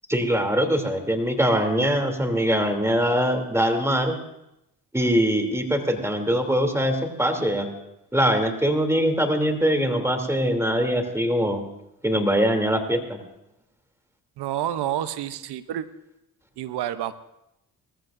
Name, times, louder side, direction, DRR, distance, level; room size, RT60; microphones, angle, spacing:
voice 1, 0.1-4.2 4.9-7.7 8.1-11.6 12.0-13.2, equal, 5° right, 4 dB, 2.9 m, -22 dB
voice 2, 14.4-15.9 16.6-17.1, right 11 dB, 70° right, 13 dB, 0.8 m, -29 dB
20.5 x 15.0 x 2.6 m, 0.86 s
supercardioid pair, 50°, 41 cm